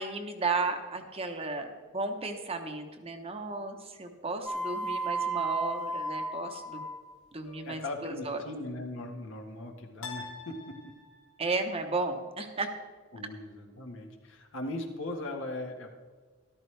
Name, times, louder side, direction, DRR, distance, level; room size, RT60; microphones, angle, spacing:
voice 1, 0.0-6.8 7.3-8.4 11.4-12.7, right 3 dB, 30° right, 5 dB, 1.1 m, -34 dB
sound 1, 4.5-7.1, right 3 dB, ahead, 1.4 m, -33 dB
sound 2, 7.4-8.2 10.0-11.5, left 4 dB, 85° left, 1.7 m, -46 dB
voice 2, 7.6-10.8 13.1-15.9, left 2 dB, 65° left, 3 dB, 1.6 m, -39 dB
13.5 x 12.5 x 3.4 m, 1.5 s
head